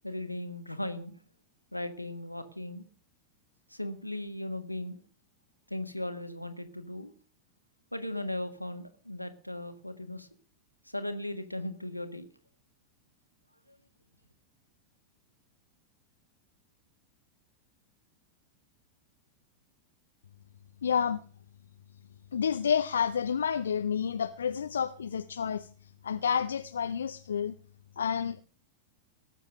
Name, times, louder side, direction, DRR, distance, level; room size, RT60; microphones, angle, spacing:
voice 1, 0.0-1.1 1.7-2.8 3.7-5.0 5.7-7.1 7.9-10.3 10.8-12.3, left 1 dB, 90° left, 1.5 m, -37 dB
voice 2, 20.8-21.2 22.3-27.5 28.0-28.4, left 7 dB, 70° left, 0.6 m, -30 dB
18.5 x 7.4 x 6.2 m
figure-of-eight pair, 90°, 0 cm